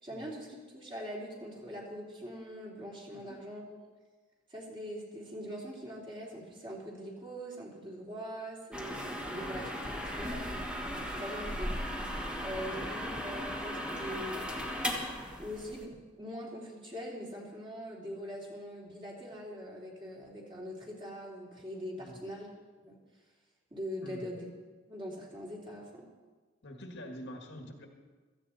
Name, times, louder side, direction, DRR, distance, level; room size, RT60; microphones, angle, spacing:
voice 1, 0.0-3.8 4.5-10.5 11.2-11.8 12.4-14.5 15.4-22.5 22.8-23.0 23.7-24.5 24.9-26.1, equal, 25° right, -3 dB, 3.1 m, -42 dB
sound 1, 8.7-15.8, equal, 5° right, 1.5 m, -37 dB
voice 2, 24.0-24.4 26.6-27.9, equal, 65° left, 3 dB, 1.8 m, -47 dB
16.5 x 14.0 x 4.2 m, 1.4 s
head